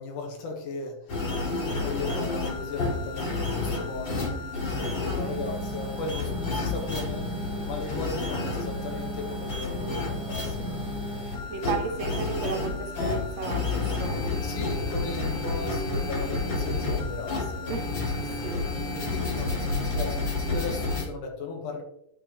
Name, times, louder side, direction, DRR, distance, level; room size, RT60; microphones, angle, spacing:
voice 1, 0.0-4.4 4.8-7.4 7.6-10.7 11.5-11.8 14.4-17.8 18.4-21.8, left 3 dB, 85° left, 2 dB, 3.1 m, -37 dB
sound 1, 1.1-21.0, left 3 dB, 40° left, 2.6 m, -30 dB
voice 2, 4.8-5.4 11.5-14.3 15.3-16.1 17.7-17.9 18.4-18.6, right 5 dB, 65° right, 5 dB, 2.1 m, -35 dB
9.0 x 8.7 x 3.2 m, 0.76 s
omnidirectional pair, 3.5 m